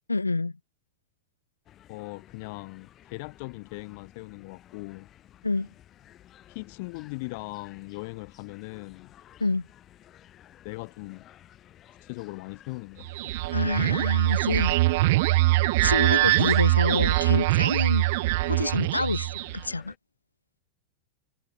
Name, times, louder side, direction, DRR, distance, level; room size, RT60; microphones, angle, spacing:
voice 1, 0.1-0.5 5.4-5.7 9.4-9.7 13.5-14.8 15.8-18.1 18.5-19.3 19.5-19.9, left 3 dB, 80° left, 1.0 m, -27 dB
sound 1, 1.7-20.0, left 12 dB, 30° left, 3.8 m, -54 dB
voice 2, 1.9-5.1 6.5-9.1 10.6-11.3 12.0-13.1, left 28 dB, 45° left, 4.0 m, -39 dB
sound 2, 13.0-19.7, right 20 dB, 50° right, 0.3 m, -23 dB
figure-of-eight pair, 90°, 0 cm